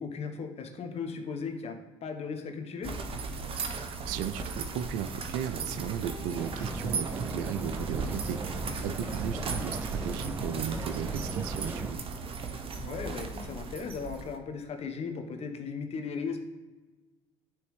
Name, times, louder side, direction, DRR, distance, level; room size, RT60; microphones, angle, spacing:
voice 1, 0.0-2.9 12.8-16.4, left 5 dB, 45° left, 5 dB, 1.1 m, -37 dB
sound 1, 2.8-14.4, right 4 dB, 40° right, 0.9 m, -36 dB
voice 2, 3.6-8.5 8.8-12.0, right 9 dB, 70° right, 12 dB, 0.4 m, -36 dB
sound 2, 6.4-11.9, right 3 dB, 15° right, 0.4 m, -38 dB
9.3 x 3.4 x 3.2 m, 1.2 s
hypercardioid pair, 70°, 14 cm